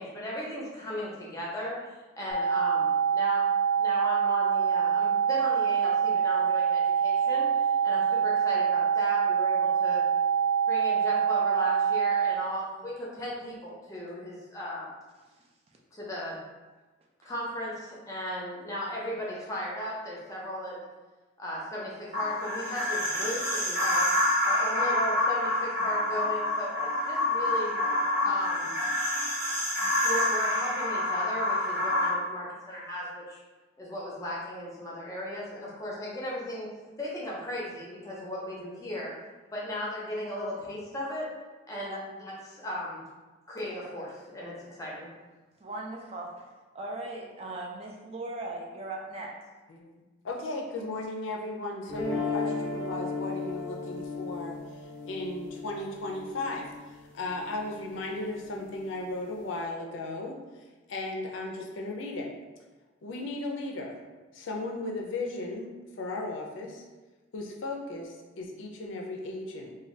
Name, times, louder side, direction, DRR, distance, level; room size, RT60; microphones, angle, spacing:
voice 1, 0.0-3.4 3.8-7.5 7.8-10.0 10.7-14.9 15.9-16.4 17.2-20.9 21.4-24.1 24.4-27.7 28.2-28.7 30.0-33.4 33.8-36.7 37.0-39.1 39.5-41.3 41.7-43.0 43.5-45.1, left 1 dB, 15° left, -5 dB, 0.6 m, -36 dB
sound 1, 2.3-12.3, right 7 dB, 80° right, 1.0 m, -25 dB
sound 2, 22.1-32.1, left 1 dB, 60° right, 0.9 m, -27 dB
voice 2, 45.6-46.4 46.7-49.4, right 2 dB, 30° right, -1 dB, 0.4 m, -38 dB
voice 3, 49.7-54.6 55.0-56.7 57.1-60.4 60.9-62.3 63.0-64.0 64.3-65.7 66.0-66.8 67.3-69.8, left 2 dB, 75° left, 1 dB, 0.4 m, -36 dB
sound 3, 51.9-58.0, left 3 dB, 15° right, 0.7 m, -35 dB
2.7 x 2.2 x 3.1 m, 1.2 s
head